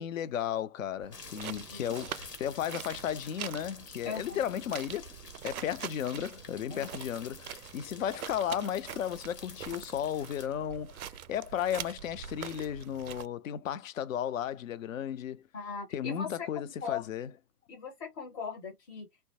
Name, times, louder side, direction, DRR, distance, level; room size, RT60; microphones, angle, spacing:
voice 1, 0.0-5.1 5.4-15.4 15.9-17.3, left 9 dB, 60° left, 0.5 m, -34 dB
sound 1, 1.0-13.3, right 9 dB, 65° right, 0.5 m, -44 dB
sound 2, 1.1-10.5, left 5 dB, 80° left, 1.2 m, -50 dB
voice 2, 1.5-2.0 4.0-4.5 6.7-6.9 15.5-17.1 17.7-19.1, left 6 dB, 15° left, 0.6 m, -39 dB
3.1 x 2.2 x 2.7 m
figure-of-eight pair, 120°, 47 cm